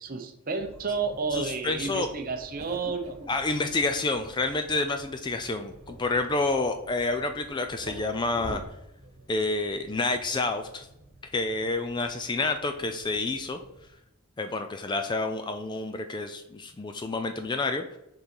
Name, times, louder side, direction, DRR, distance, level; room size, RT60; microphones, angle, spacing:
voice 1, 0.0-3.4, right 4 dB, 40° right, 6 dB, 0.7 m, -31 dB
sound 1, 0.6-13.9, right 1 dB, 70° right, 1.2 m, -48 dB
voice 2, 1.3-2.1 3.3-8.6 9.3-10.9 11.3-13.6 14.4-17.8, left 3 dB, 20° left, 7 dB, 0.3 m, -29 dB
6.8 x 3.8 x 4.4 m, 0.84 s
head